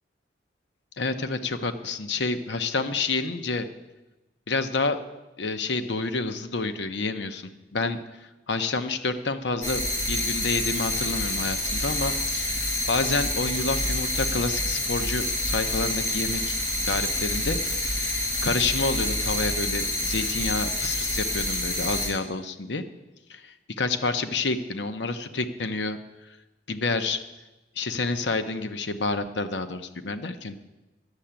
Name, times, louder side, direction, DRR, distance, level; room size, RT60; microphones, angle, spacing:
voice 1, 1.0-3.7 4.5-5.0 5.4-8.0 8.5-9.8 10.1-16.6 16.8-18.1 18.4-22.8 23.3-26.0 26.7-27.2 27.8-30.7, left 3 dB, 75° left, 9 dB, 0.8 m, -29 dB
sound 1, 9.6-22.1, left 1 dB, 40° left, 5.4 m, -27 dB
11.5 x 6.8 x 8.8 m, 1.0 s
head